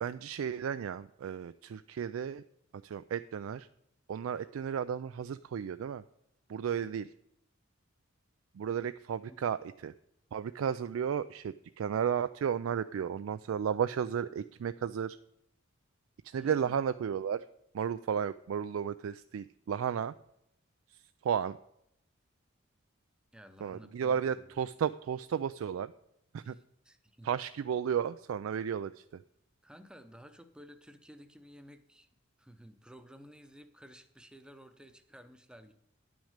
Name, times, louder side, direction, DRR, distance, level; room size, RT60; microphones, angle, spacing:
voice 1, 0.0-2.4 2.8-3.7 4.1-6.0 6.5-7.1 8.5-9.9 10.3-15.2 16.2-17.5 17.7-20.1 20.9-21.6 23.6-25.9 26.3-26.6 27.2-29.2, right 8 dB, 80° right, 12 dB, 0.3 m, -33 dB
voice 2, 16.3-16.8 23.3-24.7 26.4-27.3 29.6-32.1 32.4-35.7, equal, 5° right, 8 dB, 0.7 m, -54 dB
10.0 x 6.3 x 6.5 m, 0.77 s
head